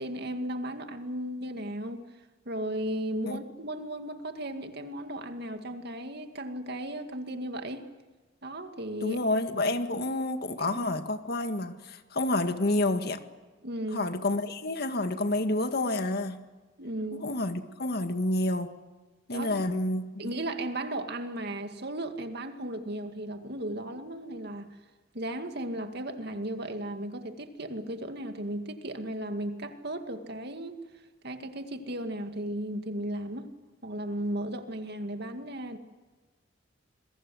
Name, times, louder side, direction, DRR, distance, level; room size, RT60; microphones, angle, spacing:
voice 1, 0.0-2.0 2.5-7.9 8.4-9.2 10.6-10.7 13.6-14.1 16.8-17.3 19.3-19.6 20.2-24.7 25.1-30.8 31.2-33.5 33.8-35.8, right 1 dB, 60° right, 7 dB, 2.3 m, -35 dB
voice 2, 9.0-13.2 13.9-16.4 17.2-18.7 19.3-20.3, left 2 dB, 55° left, 8 dB, 1.9 m, -29 dB
28.0 x 22.0 x 7.9 m, 1.2 s
head